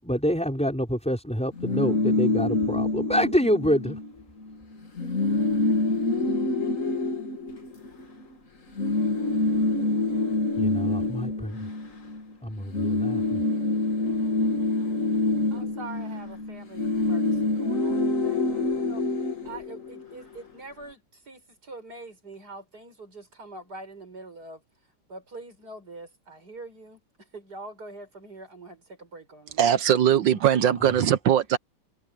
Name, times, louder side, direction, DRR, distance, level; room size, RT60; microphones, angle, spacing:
voice 1, 0.0-4.0 10.6-11.7 12.4-13.4 30.8-30.9, equal, 5° left, 5.5 m, -27 dB
sound 1, 1.5-4.1 4.4-4.6 4.8-8.2 8.8-12.3 12.6-20.2, left 2 dB, 45° left, 2.7 m, -26 dB
voice 2, 15.5-19.0 19.4-24.6 25.1-29.7, right 2 dB, 60° right, 6.8 m, -44 dB
voice 3, 29.6-31.6, right 10 dB, 80° right, 1.7 m, -20 dB
omnidirectional pair, 2.0 m